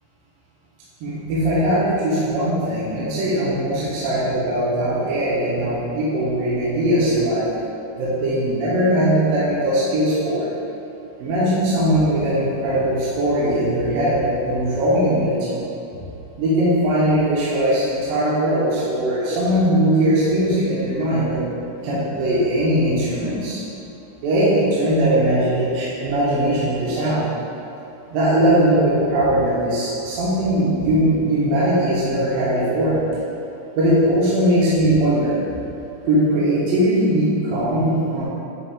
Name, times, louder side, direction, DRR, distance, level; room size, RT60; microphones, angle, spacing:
voice 1, 1.0-7.4 8.0-10.5 11.2-15.6 16.4-21.4 21.8-23.6 24.2-27.2 28.1-33.0 33.8-35.4 36.1-38.2, right 1 dB, 75° right, -9 dB, 2.5 m, -20 dB
9.9 x 4.7 x 2.2 m, 2.8 s
omnidirectional pair, 4.4 m